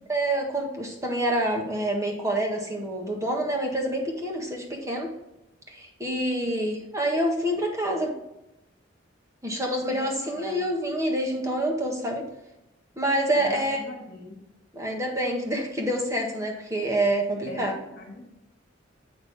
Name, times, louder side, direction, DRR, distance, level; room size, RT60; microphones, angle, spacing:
voice 1, 0.1-5.1 5.7-8.1 9.4-12.2 13.0-13.9 14.7-17.7, right 1 dB, 15° right, 0 dB, 1.4 m, -27 dB
voice 2, 6.2-6.6 9.9-10.6 13.4-14.4 17.5-18.2, left 2 dB, 50° left, 1 dB, 2.0 m, -41 dB
8.1 x 6.1 x 3.4 m, 0.89 s
head